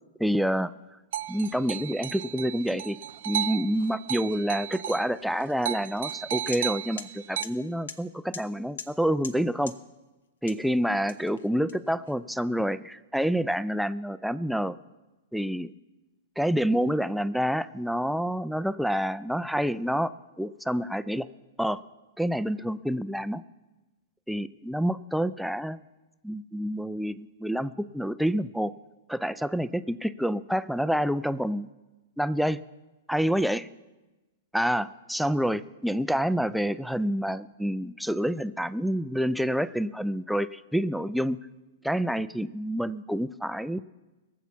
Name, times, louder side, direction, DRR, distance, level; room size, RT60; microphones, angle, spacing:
voice 1, 0.2-0.7 1.3-3.0 3.3-9.7 10.4-14.8 15.3-15.7 16.4-21.3 21.6-21.8 22.2-23.4 24.3-25.8 26.2-28.7 29.1-31.7 32.2-32.6 33.1-33.7 34.5-41.4 41.8-43.8, equal, ahead, 14 dB, 0.3 m, -28 dB
sound 1, 1.1-5.1 5.4-7.4, right 11 dB, 60° right, 0.4 m, -34 dB
sound 2, 6.1-6.2 6.5-6.6 7.0-7.1 7.4-7.5 7.9-8.0 8.3-8.4 8.8-8.9 9.2-9.4 9.7-9.8 10.5-10.7 11.1-12.1, left 6 dB, 75° left, 0.9 m, -40 dB
17.0 x 7.3 x 7.0 m, 1.1 s
hypercardioid pair, 110°, 0 cm